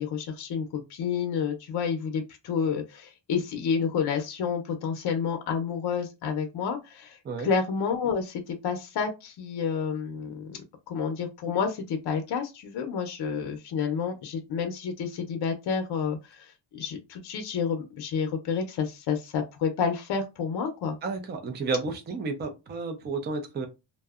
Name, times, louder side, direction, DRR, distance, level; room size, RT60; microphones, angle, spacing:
voice 1, 0.0-10.6 10.9-21.0, left 6 dB, 60° left, 5 dB, 0.6 m, -30 dB
voice 2, 21.0-23.7, right 4 dB, 25° right, 6 dB, 0.4 m, -31 dB
2.6 x 2.1 x 2.3 m, 0.25 s
cardioid pair, 145°, 45 cm